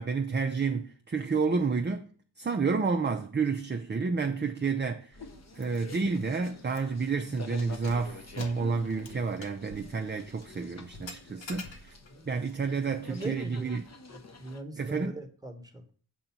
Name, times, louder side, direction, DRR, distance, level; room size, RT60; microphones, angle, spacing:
voice 1, 0.0-2.1 2.4-5.2 5.5-11.9 12.3-13.8 14.8-15.2, right 4 dB, 25° right, 0.4 m, -30 dB
sound 1, 5.1-14.6, left 3 dB, 35° left, 0.7 m, -49 dB
Keys jangling, 5.6-5.8 6.1-6.2 6.7-7.0 7.5-12.2, left 3 dB, 70° left, 1.0 m, -47 dB
voice 2, 12.7-13.7 14.1-15.9, right 2 dB, 10° right, 1.1 m, -41 dB
7.0 x 2.6 x 5.6 m
wide cardioid pair, 60°, 47 cm